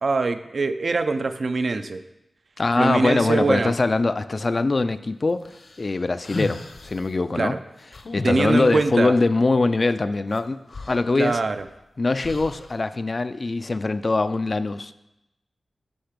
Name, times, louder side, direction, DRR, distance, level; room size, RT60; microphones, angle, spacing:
voice 1, 0.0-2.0 2.8-3.7 7.4-7.6 8.2-9.2 11.2-11.6, right 3 dB, 60° right, 9 dB, 0.5 m, -23 dB
voice 2, 2.6-5.5 5.8-7.6 8.1-10.6 10.9-11.4 12.0-14.9, left 3 dB, 40° left, 12 dB, 0.4 m, -22 dB
sound 1, 5.5-7.1 7.9-8.9 10.4-10.5 10.7-11.7 12.2-12.8, left 2 dB, 60° left, 1.0 m, -35 dB
10.5 x 5.6 x 5.1 m, 0.91 s
wide cardioid pair, 100°, 0 cm